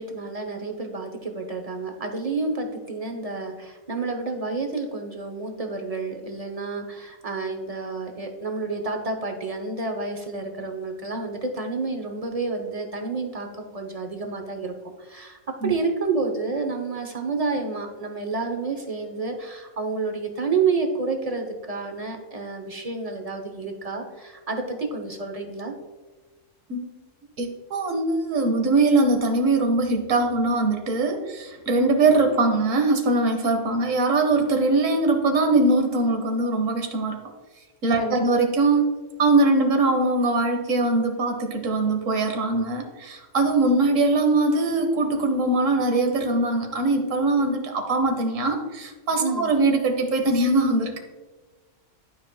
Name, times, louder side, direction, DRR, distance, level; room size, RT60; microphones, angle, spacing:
voice 1, 0.0-25.7 38.0-38.2 49.2-49.5, right 4 dB, 35° right, 4 dB, 0.8 m, -29 dB
voice 2, 27.4-37.2 37.8-38.9 39.2-51.0, right 2 dB, 80° right, 4 dB, 1.3 m, -22 dB
11.5 x 4.8 x 2.2 m, 1.2 s
omnidirectional pair, 1.3 m